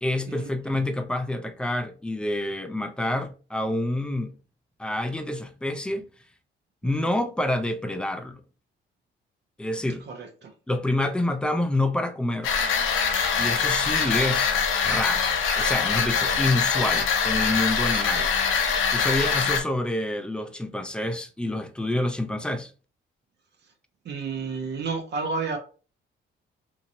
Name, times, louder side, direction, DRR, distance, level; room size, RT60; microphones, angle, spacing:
voice 1, 0.0-4.3 4.8-6.0 6.8-8.4 9.6-10.1 10.7-12.5 13.4-14.5 14.8-18.3 18.9-22.7, left 1 dB, 5° left, 0.5 m, -27 dB
voice 2, 10.1-10.5 19.1-19.3 24.0-25.6, right 4 dB, 60° right, 0.7 m, -31 dB
sound 1, 12.4-19.6, left 6 dB, 80° left, 0.7 m, -23 dB
2.9 x 2.7 x 2.6 m
cardioid pair, 90°, 20 cm